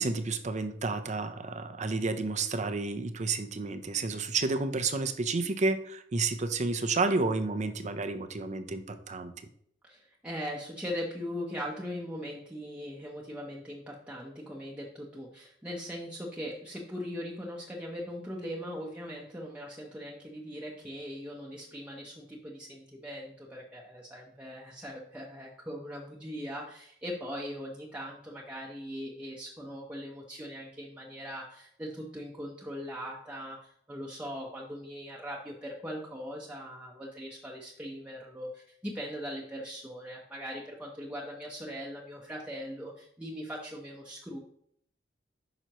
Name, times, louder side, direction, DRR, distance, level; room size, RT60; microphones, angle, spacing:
voice 1, 0.0-9.3, right 3 dB, 40° right, 10 dB, 0.6 m, -30 dB
voice 2, 9.8-44.4, equal, 5° right, -4 dB, 0.8 m, -40 dB
9.1 x 5.8 x 3.0 m, 0.68 s
head